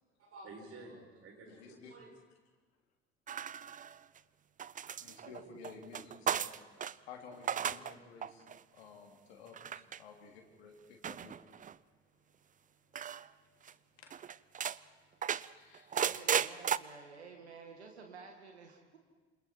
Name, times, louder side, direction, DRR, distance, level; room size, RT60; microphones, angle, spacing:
voice 1, 0.2-2.1 4.8-5.6, right 2 dB, 45° right, 1 dB, 7.7 m, -52 dB
voice 2, 1.5-2.0 5.0-6.7 7.1-8.5 8.7-11.4 14.0-14.1 15.4-16.2, left 5 dB, 70° left, 2 dB, 3.4 m, -53 dB
sound 1, 3.3-4.2 4.6-6.9 7.3-7.9 8.2-8.6 9.5-10.0 11.0-11.7 12.9-13.3 13.7-13.8 14.1-14.8 15.2-16.8, right 8 dB, 25° right, 0.6 m, -35 dB
voice 3, 15.9-19.0, right 5 dB, 80° right, 3 dB, 2.0 m, -52 dB
28.0 x 26.5 x 4.6 m, 1.4 s
figure-of-eight pair, 55°, 32 cm